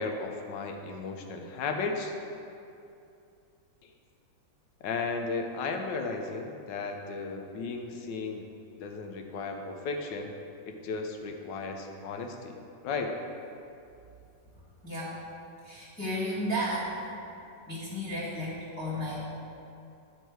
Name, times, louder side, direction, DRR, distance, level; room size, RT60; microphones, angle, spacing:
voice 1, 0.0-2.1 4.8-8.4 8.8-10.3 10.7-12.5 12.8-13.2, left 4 dB, 75° left, 4 dB, 1.3 m, -34 dB
voice 2, 14.5-15.2 15.6-16.9 17.4-19.3, equal, 5° left, -12 dB, 1.5 m, -34 dB
11.0 x 4.5 x 4.6 m, 2.6 s
omnidirectional pair, 2.0 m